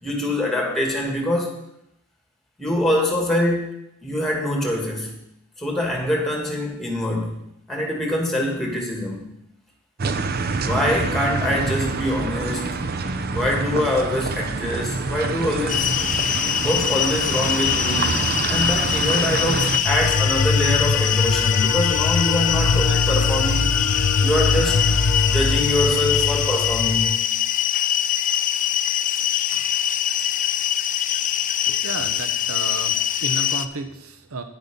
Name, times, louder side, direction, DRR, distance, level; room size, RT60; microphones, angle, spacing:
voice 1, 0.0-1.6 2.6-3.7 4.0-5.2 5.6-7.4 7.7-9.2 10.6-12.8 13.3-15.9 16.6-23.7 24.2-24.8 25.3-27.2, left 1 dB, ahead, 0 dB, 2.1 m, -24 dB
sound 1, 10.0-19.8, right 4 dB, 45° right, 0.7 m, -26 dB
sound 2, 15.7-33.7, left 10 dB, 40° left, 0.4 m, -23 dB
sound 3, 19.8-27.2, left 4 dB, 75° left, 0.7 m, -22 dB
voice 2, 31.7-34.4, right 3 dB, 75° right, 8 dB, 0.9 m, -32 dB
10.0 x 8.2 x 5.4 m, 0.80 s
head